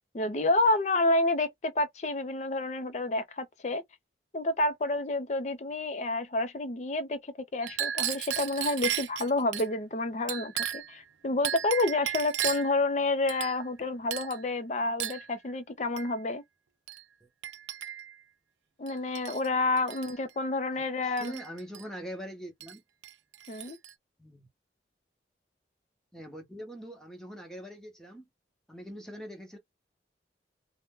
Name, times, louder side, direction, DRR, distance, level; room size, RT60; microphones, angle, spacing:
voice 1, 0.1-3.8 4.3-16.4 18.8-21.3 23.5-23.8, left 2 dB, 40° left, 0.4 m, -29 dB
Chink clink, 7.6-9.7 10.3-11.0 11.4-12.8 13.3-13.8 14.1-14.4 15.0-15.3 16.0-16.1 16.9-17.0 17.4-18.1 18.9-19.5 19.8-20.1 21.2-21.8 22.6-22.7 23.0-23.9, right 10 dB, 85° right, 0.4 m, -35 dB
voice 2, 20.7-22.8 24.2-24.5 26.1-28.2 28.7-29.6, equal, 5° left, 0.8 m, -43 dB
2.6 x 2.1 x 3.5 m
head